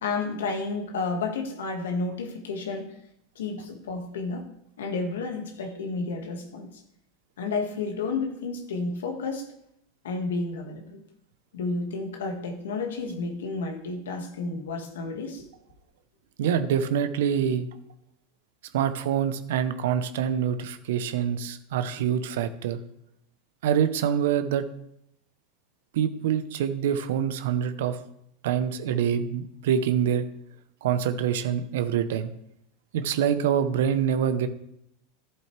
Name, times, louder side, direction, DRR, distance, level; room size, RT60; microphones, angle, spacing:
voice 1, 0.0-3.0 3.3-4.4 4.8-6.7 7.4-9.5 10.0-11.0 11.5-15.4, left 3 dB, 85° left, 3 dB, 1.7 m, -31 dB
voice 2, 16.4-17.6 18.7-22.8 23.6-24.7 25.9-28.0 28.4-30.2 30.8-32.3 32.9-34.5, right 8 dB, 75° right, 10 dB, 0.8 m, -25 dB
11.5 x 7.7 x 3.3 m, 0.77 s
hypercardioid pair, 110°, 0 cm